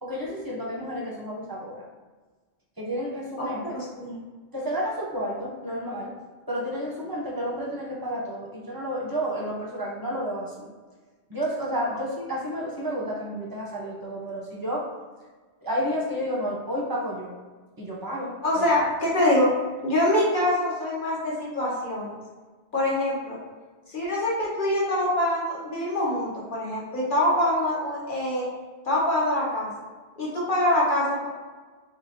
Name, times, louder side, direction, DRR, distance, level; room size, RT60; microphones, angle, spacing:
voice 1, 0.0-1.8 2.8-3.8 4.5-6.1 6.5-10.7 11.3-14.9 15.6-17.4 17.8-18.6, equal, 20° right, -4 dB, 0.7 m, -31 dB
voice 2, 3.6-4.2 18.4-19.5 19.8-22.1 22.7-23.4 23.9-28.5 28.8-29.7 30.2-31.3, left 1 dB, 50° left, -5 dB, 1.1 m, -24 dB
3.5 x 3.3 x 2.8 m, 1.4 s
omnidirectional pair, 1.2 m